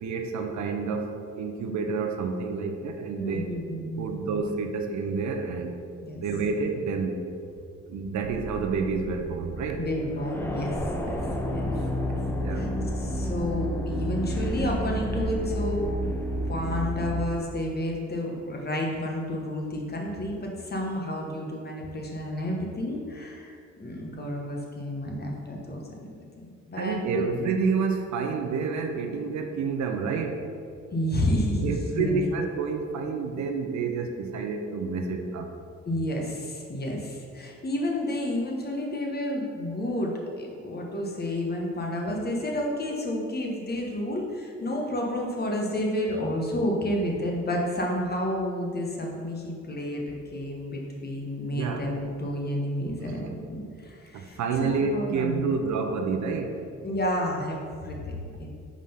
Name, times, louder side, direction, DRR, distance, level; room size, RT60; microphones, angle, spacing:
voice 1, 0.0-1.1 1.4-3.5 4.0-5.7 6.2-7.2 7.9-9.8 12.4-12.8 26.8-30.4 31.6-35.5 51.5-51.8 53.0-53.3 54.1-56.5, right 5 dB, 70° right, 4 dB, 0.7 m, -29 dB
voice 2, 3.2-4.4 6.0-6.2 9.7-10.7 11.5-11.6 12.0-12.2 12.5-12.7 13.0-15.9 16.5-27.2 30.9-32.2 35.8-55.5 56.8-58.5, left 1 dB, 30° left, 0 dB, 1.1 m, -30 dB
sound 1, 8.2-17.3, equal, 5° left, 0.7 m, -30 dB
4.9 x 3.9 x 5.6 m, 2.3 s
cardioid pair, 90°, 30 cm